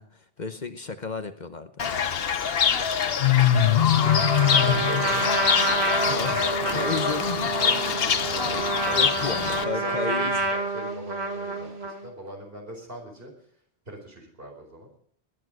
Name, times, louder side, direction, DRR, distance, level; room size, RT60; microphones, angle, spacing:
voice 1, 0.0-1.9 6.0-7.6 8.9-10.5, left 4 dB, 45° left, 9 dB, 1.0 m, -33 dB
Fowl / Bird, 1.8-9.6, left 8 dB, 70° left, 1.1 m, -23 dB
voice 2, 2.9-6.8 7.5-9.2 9.7-13.3 13.8-14.9, right 1 dB, 65° right, 2 dB, 5.0 m, -41 dB
Trumpet, 4.0-12.1, right 3 dB, 80° right, 2.1 m, -28 dB
19.5 x 10.5 x 6.3 m, 0.66 s
omnidirectional pair, 1.0 m